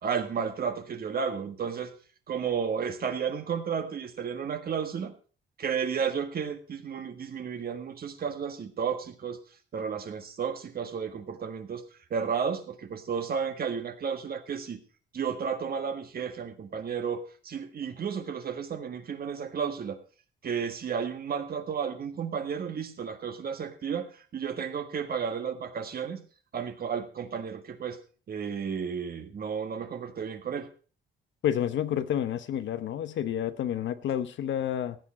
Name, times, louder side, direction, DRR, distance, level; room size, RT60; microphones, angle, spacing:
voice 1, 0.0-1.9 2.3-5.1 5.6-9.4 9.7-11.8 12.1-14.8 15.1-20.0 20.4-26.2 26.5-28.0 28.3-30.7, right 6 dB, 50° right, 1.6 m, -32 dB
voice 2, 31.4-35.0, left 10 dB, 70° left, 1.0 m, -29 dB
15.5 x 8.6 x 4.3 m
cardioid pair, 90°, 20 cm